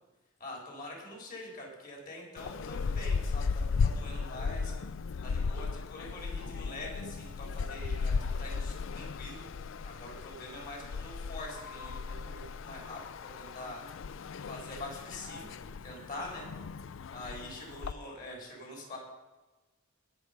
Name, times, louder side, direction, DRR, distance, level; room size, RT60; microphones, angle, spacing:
voice 1, 0.4-4.7 5.2-13.8 14.4-15.5 15.8-16.5 17.1-19.0, left 1 dB, 45° left, -1 dB, 4.3 m, -45 dB
sound 1, 2.4-17.9, left 5 dB, 75° left, 0.4 m, -36 dB
19.5 x 6.9 x 5.3 m, 1.2 s
head